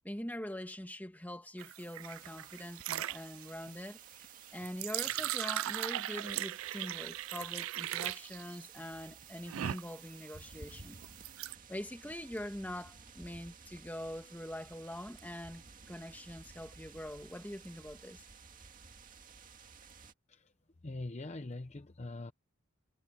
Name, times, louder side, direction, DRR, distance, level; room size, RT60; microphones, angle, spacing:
voice 1, 0.0-4.0 4.5-11.0 11.7-18.2, left 1 dB, 10° left, 2.3 m, -43 dB
sound 1, 1.6-11.6, right 13 dB, 85° right, 0.3 m, -39 dB
sound 2, 2.0-20.1, right 4 dB, 40° right, 2.1 m, -55 dB
voice 2, 20.8-22.3, left 2 dB, 35° left, 0.7 m, -43 dB
head